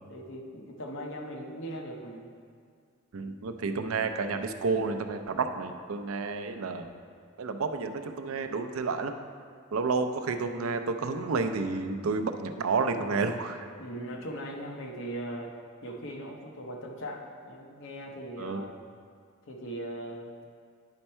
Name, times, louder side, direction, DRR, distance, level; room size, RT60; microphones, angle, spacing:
voice 1, 0.1-2.3 13.8-15.5 15.8-18.7 19.5-20.4, right 1 dB, 65° left, 1 dB, 0.9 m, -39 dB
voice 2, 3.1-6.9 7.4-9.1 9.7-13.6 18.4-18.7, right 4 dB, 90° right, 7 dB, 0.5 m, -30 dB
9.8 x 4.4 x 4.3 m, 2.1 s
head